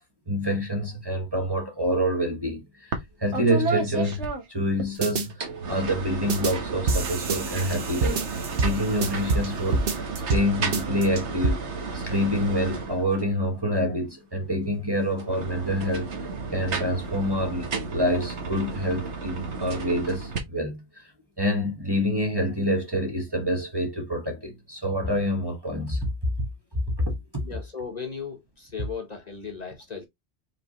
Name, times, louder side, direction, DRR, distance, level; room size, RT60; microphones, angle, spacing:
voice 1, 0.3-2.9 3.2-9.8 10.3-11.6 11.9-16.1 16.5-21.0 21.4-26.1 27.3-27.4, equal, 20° right, 1.2 m, -27 dB
sound 1, 2.9-3.1 3.3-4.9 5.3-13.4 15.1-20.4, right 4 dB, 80° right, 1.5 m, -33 dB
sound 2, 5.0-5.3 6.3-6.5 6.9-9.5 9.7-10.5 10.7-11.5, right 3 dB, 60° right, 1.0 m, -26 dB
voice 2, 27.4-30.1, left 6 dB, 40° left, 1.1 m, -36 dB
4.9 x 3.7 x 3.0 m
omnidirectional pair, 1.1 m